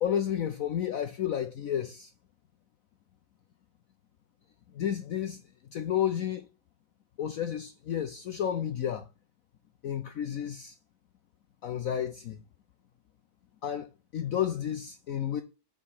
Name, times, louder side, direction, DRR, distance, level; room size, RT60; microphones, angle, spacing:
voice 1, 0.0-2.1 4.7-5.4 5.7-6.5 7.2-9.1 9.8-10.7 11.6-12.4 13.6-15.4, left 9 dB, 70° left, 0.8 m, -31 dB
5.6 x 5.1 x 6.4 m
omnidirectional pair, 2.0 m